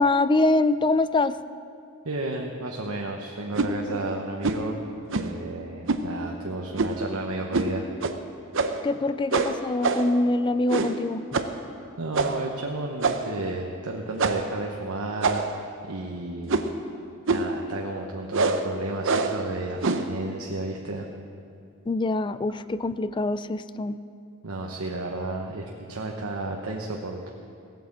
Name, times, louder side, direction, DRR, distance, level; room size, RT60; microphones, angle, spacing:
voice 1, 0.0-1.4 8.8-11.2 21.9-24.0, left 2 dB, 20° left, 14 dB, 0.4 m, -24 dB
voice 2, 2.0-4.8 5.1-7.9 12.0-15.5 15.8-16.7 17.3-21.1 24.4-27.3, right 2 dB, 85° right, 1 dB, 1.1 m, -32 dB
sound 1, 3.5-3.7 4.4-4.7 5.1-5.4 5.9-6.1 6.8-7.1 7.5-7.7 8.0-8.2 8.5-8.9 9.3-10.2 10.7-11.0 11.3-11.6 12.1-12.5 13.0-13.4 14.2-14.5 15.2-15.7 16.5-16.8 17.3-17.6 18.3-18.7 19.0-19.4 19.8-20.1, right 3 dB, 60° right, 0.8 m, -25 dB
17.0 x 9.2 x 7.4 m, 2.5 s
head